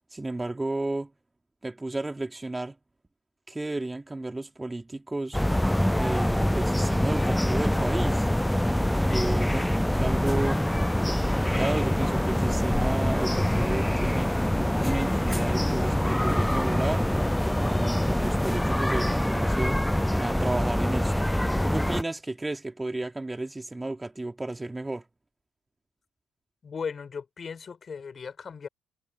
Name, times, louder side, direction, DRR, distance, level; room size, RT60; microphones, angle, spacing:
voice 1, 0.1-1.1 1.6-2.8 3.5-5.4 5.9-8.3 8.8-10.6 11.2-14.3 14.8-17.1 17.6-19.8 20.2-21.3 21.6-25.0, right 2 dB, 15° right, 3.0 m, -33 dB
sound 1, 5.3-22.0, left 1 dB, 5° left, 0.4 m, -25 dB
voice 2, 26.6-28.7, left 6 dB, 40° left, 4.1 m, -37 dB
hypercardioid pair, 55°, 0 cm